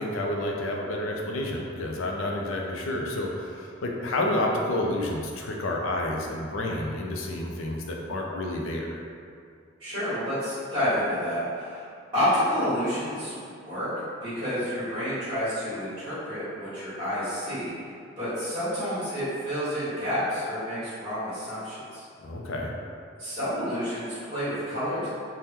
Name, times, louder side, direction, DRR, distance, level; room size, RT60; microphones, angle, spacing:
voice 1, 0.0-9.0 22.2-22.7, left 1 dB, 85° left, 0 dB, 0.4 m, -30 dB
voice 2, 9.8-11.9 12.1-13.9 14.2-17.7 18.2-22.0 23.2-25.1, equal, 25° right, -15 dB, 1.5 m, -29 dB
3.5 x 2.1 x 2.8 m, 2.3 s
head